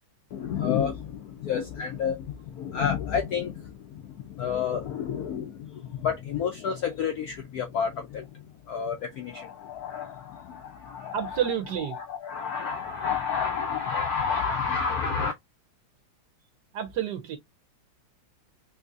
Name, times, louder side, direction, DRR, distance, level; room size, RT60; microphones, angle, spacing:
voice 1, 0.3-11.4 11.9-15.3, left 7 dB, 75° left, 0.8 m, -30 dB
voice 2, 11.1-12.0 16.7-17.4, right 9 dB, 70° right, 1.1 m, -29 dB
3.8 x 2.7 x 2.4 m
omnidirectional pair, 2.2 m